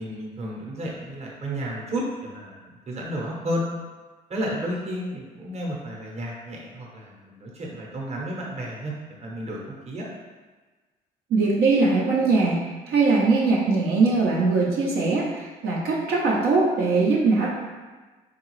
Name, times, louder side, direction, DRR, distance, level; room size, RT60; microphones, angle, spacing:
voice 1, 0.0-3.6 4.3-10.1, equal, 40° right, -2 dB, 0.9 m, -32 dB
voice 2, 11.3-12.6 12.9-17.5, right 3 dB, 70° right, -5 dB, 0.7 m, -21 dB
3.7 x 2.3 x 3.1 m, 1.3 s
supercardioid pair, 80°, 17 cm